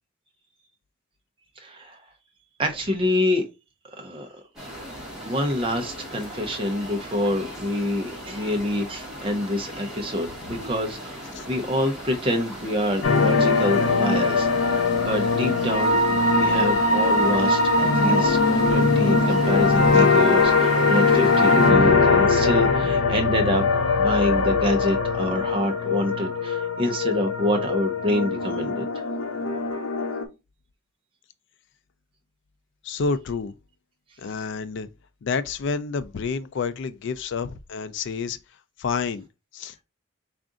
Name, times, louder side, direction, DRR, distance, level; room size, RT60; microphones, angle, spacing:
voice 1, 1.6-2.0 2.6-3.4 4.0-4.3 5.2-18.4 18.7-23.7 24.0-28.8, left 1 dB, 25° right, 0.6 m, -26 dB
sound 1, 4.6-21.7, equal, 5° right, 1.3 m, -38 dB
sound 2, 13.0-30.2, left 3 dB, 85° left, 0.7 m, -21 dB
voice 2, 32.8-33.5 34.2-34.9 35.2-38.4 38.8-39.2 39.5-39.7, left 5 dB, 55° left, 0.3 m, -29 dB
3.7 x 2.5 x 3.6 m
head